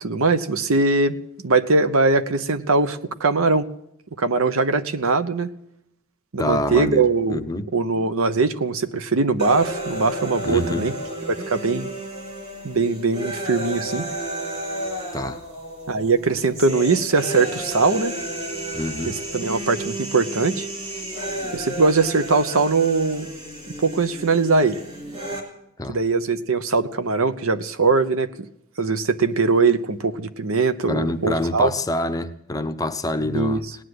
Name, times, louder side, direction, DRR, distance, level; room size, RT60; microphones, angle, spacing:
voice 1, 0.0-1.2 1.4-3.7 4.2-5.5 6.3-7.4 7.7-10.9 11.3-11.9 12.6-14.1 15.9-18.1 19.1-20.7 21.5-23.3 23.7-24.8 25.9-28.5 28.8-31.7 33.2-33.8, right 3 dB, 65° right, 0.9 m, -21 dB
voice 2, 6.4-7.0 7.3-7.7 10.4-10.9 15.1-15.4 18.7-19.1 25.8-26.0 30.9-33.6, left 1 dB, 15° left, 0.7 m, -26 dB
sound 1, 9.4-25.4, right 1 dB, 30° right, 3.7 m, -32 dB
18.0 x 10.0 x 7.9 m
head